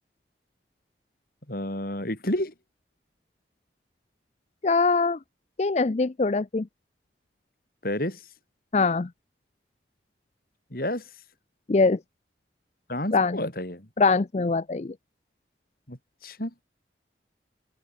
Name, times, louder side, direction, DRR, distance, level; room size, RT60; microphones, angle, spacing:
voice 1, 1.5-2.5 7.8-8.2 10.7-11.1 12.9-13.9 15.9-16.5, left 1 dB, 55° left, 5.1 m, -30 dB
voice 2, 4.6-5.2 5.6-6.7 8.7-9.1 11.7-12.0 13.1-13.4 14.0-14.9, left 4 dB, 35° left, 0.5 m, -22 dB
open air
head